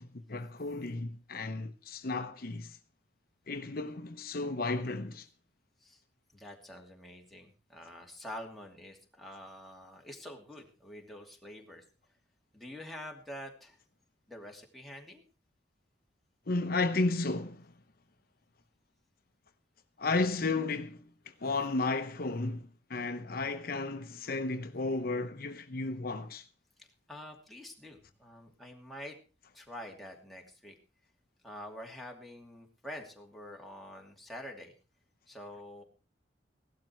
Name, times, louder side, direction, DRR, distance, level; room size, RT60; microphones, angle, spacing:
voice 1, 0.0-2.8 3.5-5.3 16.5-17.7 20.0-21.0 21.4-26.5, left 3 dB, 55° left, 0.8 m, -33 dB
voice 2, 6.3-11.8 12.5-13.8 14.3-15.2 26.8-29.2 29.5-30.8 31.4-34.7 35.3-35.8, left 1 dB, ahead, 2.6 m, -47 dB
16.5 x 12.0 x 4.5 m
head